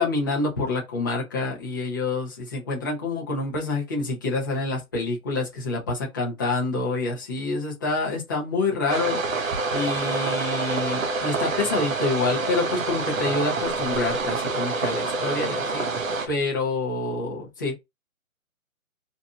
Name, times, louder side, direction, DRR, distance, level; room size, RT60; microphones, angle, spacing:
voice 1, 0.0-9.4 9.7-15.9 16.3-17.7, left 3 dB, 15° left, 0.7 m, -27 dB
sound 1, 8.9-16.3, right 3 dB, 65° right, 1.1 m, -27 dB
3.9 x 2.6 x 2.3 m
hypercardioid pair, 155°, 42 cm